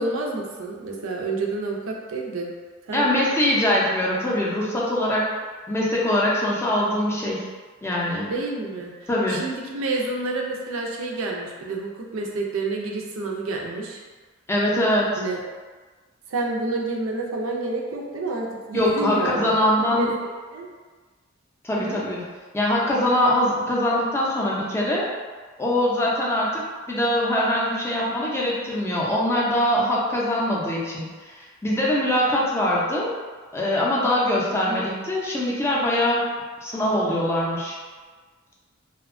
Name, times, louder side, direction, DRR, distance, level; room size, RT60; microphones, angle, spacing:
voice 1, 0.0-2.5 2.9-3.1 8.3-14.0 15.2-15.4 16.3-20.7 21.7-22.0 34.7-34.8, right 2 dB, 80° right, -1 dB, 0.4 m, -29 dB
voice 2, 2.9-5.3 5.7-7.5 7.8-8.3 9.1-9.4 14.5-15.2 18.7-20.1 21.6-22.2 22.5-25.1 25.6-26.6 26.9-33.1 33.5-36.3 36.6-37.8, left 1 dB, 15° left, -5 dB, 0.4 m, -23 dB
2.7 x 2.1 x 2.5 m, 1.4 s
head